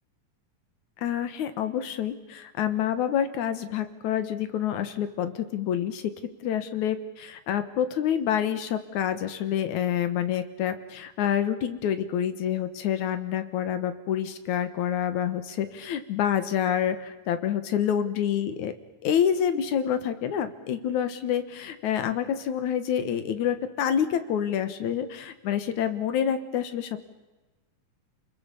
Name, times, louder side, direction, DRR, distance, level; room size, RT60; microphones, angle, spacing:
voice 1, 1.0-6.0 6.4-18.7 19.0-26.9, left 9 dB, 70° left, 10 dB, 2.7 m, -27 dB
29.5 x 21.5 x 7.1 m, 1.2 s
omnidirectional pair, 3.7 m